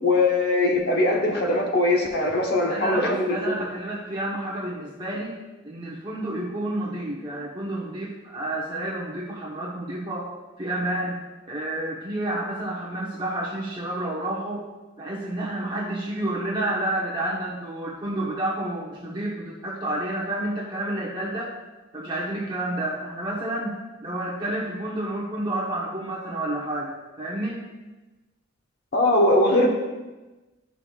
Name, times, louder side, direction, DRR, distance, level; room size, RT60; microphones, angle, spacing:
voice 1, 0.0-3.5 28.9-29.7, left 2 dB, 50° left, 1 dB, 1.2 m, -21 dB
voice 2, 2.6-5.4 5.6-10.3 10.6-11.2 11.5-14.6 15.0-21.5 21.9-23.8 24.0-27.7, right 1 dB, 25° right, -5 dB, 1.1 m, -30 dB
12.5 x 5.9 x 2.4 m, 1.2 s
head